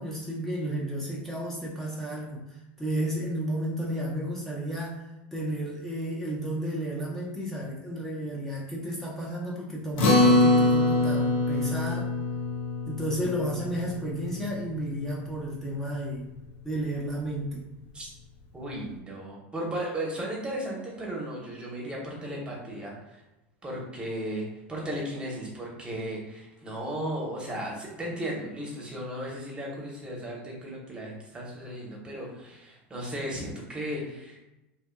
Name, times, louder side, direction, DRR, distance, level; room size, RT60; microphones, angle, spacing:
voice 1, 0.0-2.4 2.8-5.0 5.3-12.1 12.9-16.2 16.6-17.6, right 1 dB, 5° left, -5 dB, 0.6 m, -32 dB
Acoustic guitar, 10.0-14.7, left 2 dB, 75° left, 0.7 m, -24 dB
voice 2, 18.5-23.2 23.6-34.4, right 1 dB, 15° right, -3 dB, 0.9 m, -35 dB
2.7 x 2.5 x 2.2 m, 0.98 s
supercardioid pair, 110°, 6 cm